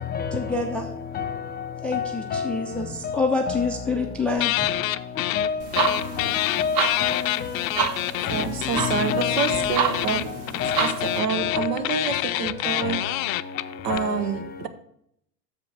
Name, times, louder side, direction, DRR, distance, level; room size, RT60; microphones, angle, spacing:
voice 1, 0.3-0.9 1.8-4.7, left 3 dB, 5° left, 0.3 m, -27 dB
voice 2, 1.9-2.5 3.5-3.6 4.6-4.7 5.3-6.0 6.6-7.1 8.3-8.4 8.7-9.7 10.6-11.1 11.4-11.7 12.8-13.0 13.9-14.2, left 6 dB, 20° left, 0.8 m, -27 dB
sound 1, 4.4-5.5 5.7-14.0, left 17 dB, 60° left, 0.5 m, -27 dB
sound 2, 5.6-11.2, right 5 dB, 45° right, 1.3 m, -29 dB
voice 3, 8.3-10.2 10.6-13.0 13.8-14.7, right 6 dB, 85° right, 1.1 m, -27 dB
6.8 x 5.2 x 7.0 m
hypercardioid pair, 105°, 47 cm